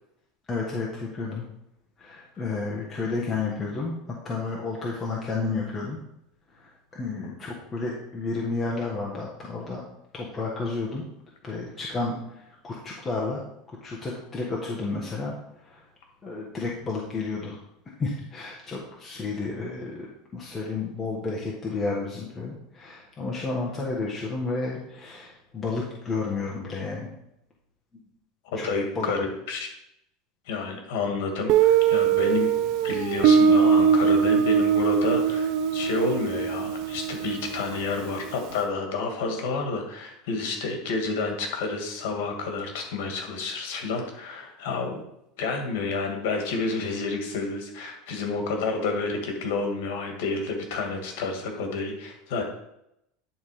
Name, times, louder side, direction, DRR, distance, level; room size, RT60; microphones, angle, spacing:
voice 1, 0.5-1.4 2.0-6.0 6.6-9.8 10.1-11.0 11.4-13.4 13.8-15.4 15.6-15.8 16.2-17.6 18.0-20.1 20.3-27.1 28.6-28.7 28.9-29.1, left 3 dB, 20° left, -4 dB, 1.3 m, -31 dB
voice 2, 28.5-29.7 30.5-32.6 32.8-45.0 45.4-52.4, left 4 dB, 75° left, 3 dB, 2.0 m, -30 dB
Guitar, 31.5-38.2, right 7 dB, 55° right, 0.5 m, -21 dB
10.5 x 3.6 x 5.0 m, 0.80 s
supercardioid pair, 150°, 0 cm